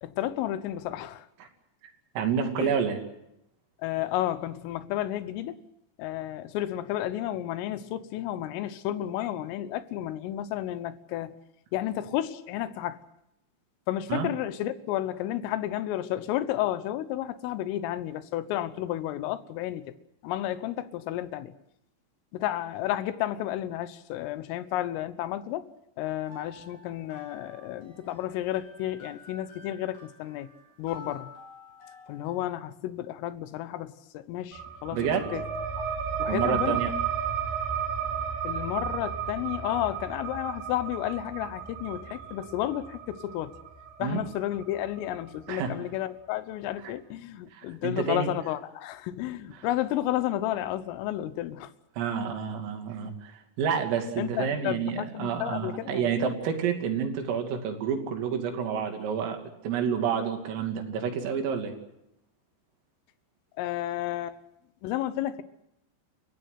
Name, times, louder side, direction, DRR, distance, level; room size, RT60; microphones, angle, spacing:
voice 1, 0.0-1.3 2.6-2.8 3.8-5.6 6.0-11.4 11.7-13.0 13.9-19.9 20.2-21.5 22.3-25.7 26.0-30.5 30.8-31.3 32.1-35.4 35.8-35.9 36.2-36.8 38.4-43.6 44.0-51.7 53.0-53.1 54.2-56.2 63.6-64.4 64.8-65.4, left 13 dB, 85° left, 3.7 m, -32 dB
voice 2, 2.2-3.0 14.1-14.3 34.9-35.3 36.3-36.9 44.0-44.2 45.5-45.8 46.8-46.9 47.5-48.3 52.0-61.7, right 7 dB, 85° right, 5.3 m, -29 dB
sound 1, 26.2-32.4, left 2 dB, 55° left, 7.9 m, -50 dB
sound 2, 34.5-45.7, right 7 dB, 55° right, 5.4 m, -33 dB
29.5 x 16.0 x 8.0 m
omnidirectional pair, 5.8 m